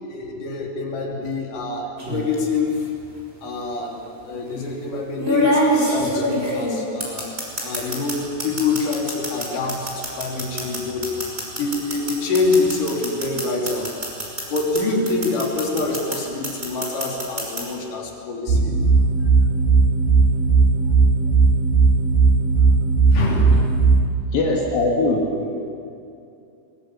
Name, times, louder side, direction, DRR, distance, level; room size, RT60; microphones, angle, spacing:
voice 1, 0.0-2.9 3.4-4.0 4.3-7.3 7.6-11.1 11.6-13.9 14.5-18.7 21.0-21.2 23.1-23.7 25.3-25.7, left 3 dB, 65° left, -1 dB, 4.9 m, -25 dB
sound 1, 2.0-2.3 3.5-3.6 5.2-8.1 8.4-14.8 15.1-16.2 16.4-17.6, right 1 dB, 15° right, 5.9 m, -24 dB
sound 2, 18.5-24.0, right 4 dB, 85° right, 4.8 m, -16 dB
voice 2, 24.3-25.4, left 2 dB, 85° left, -2 dB, 4.4 m, -20 dB
23.0 x 23.0 x 8.7 m, 2.6 s
omnidirectional pair, 4.0 m